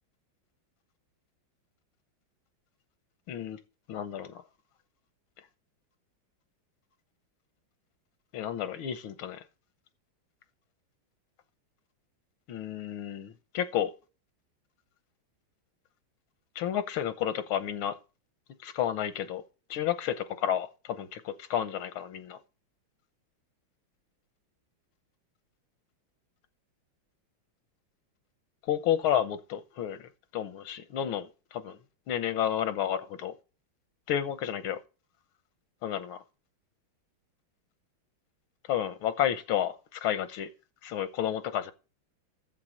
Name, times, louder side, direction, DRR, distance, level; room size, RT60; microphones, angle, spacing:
voice 1, 3.3-3.6 3.9-4.4 8.3-9.4 12.5-13.9 16.6-17.9 18.6-19.4 19.7-22.4 28.7-31.8 32.1-33.4 34.1-34.8 35.8-36.2 38.7-40.5 40.8-41.7, left 10 dB, 90° left, 1.8 m, -31 dB
10.5 x 7.6 x 6.4 m
omnidirectional pair, 2.2 m